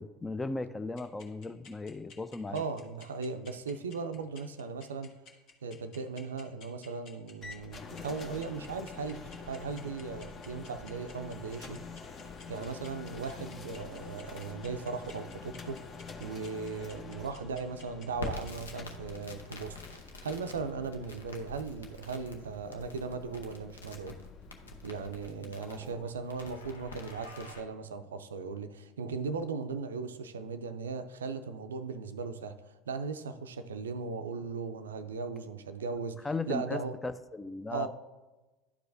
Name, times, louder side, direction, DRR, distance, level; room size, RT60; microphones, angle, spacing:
voice 1, 0.0-2.6 25.4-26.0 36.2-37.9, left 3 dB, 15° left, 12 dB, 0.4 m, -37 dB
sound 1, 1.0-18.7, left 4 dB, 55° left, 1.2 m, -53 dB
voice 2, 2.5-5.1 5.6-11.8 12.5-15.8 16.2-24.2 24.8-36.2 36.5-36.9 37.7-37.9, right 4 dB, 75° right, 9 dB, 0.4 m, -38 dB
sound 2, 7.4-25.3, left 4 dB, 35° left, 0.8 m, -47 dB
Crackle, 18.1-27.6, left 3 dB, 80° left, 0.8 m, -47 dB
11.5 x 4.7 x 2.6 m, 1.1 s
figure-of-eight pair, 70°, 0 cm